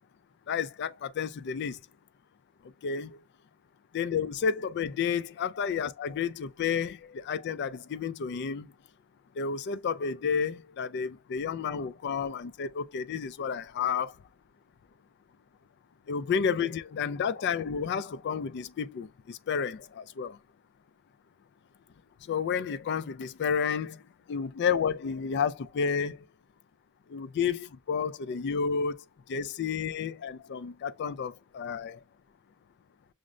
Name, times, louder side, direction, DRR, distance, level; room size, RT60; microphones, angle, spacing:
voice 1, 0.5-1.8 2.8-3.2 3.9-8.7 9.4-14.1 16.1-20.4 22.3-24.0 24.3-26.2 27.1-29.0 29.3-32.0, left 6 dB, 50° left, 0.3 m, -31 dB
6.2 x 2.1 x 2.4 m
head